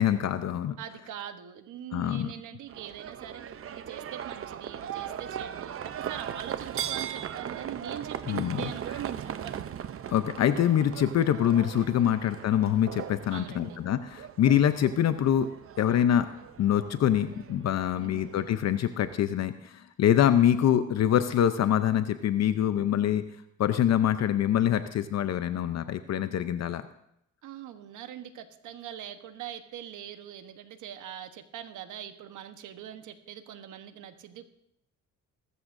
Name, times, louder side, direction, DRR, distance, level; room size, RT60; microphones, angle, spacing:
voice 1, 0.0-0.8 1.9-2.3 8.3-8.6 10.1-15.5 15.8-16.3 16.6-23.2 23.6-26.8, left 10 dB, 60° left, 11 dB, 0.7 m, -25 dB
voice 2, 0.8-9.6 11.9-12.2 13.3-13.8 17.9-18.3 27.4-34.5, right 10 dB, 80° right, 8 dB, 1.2 m, -42 dB
Livestock farm animals working animals, 2.7-19.2, right 9 dB, 45° right, 0.7 m, -39 dB
21.0 x 13.5 x 2.6 m, 0.76 s
cardioid pair, 90°, 30 cm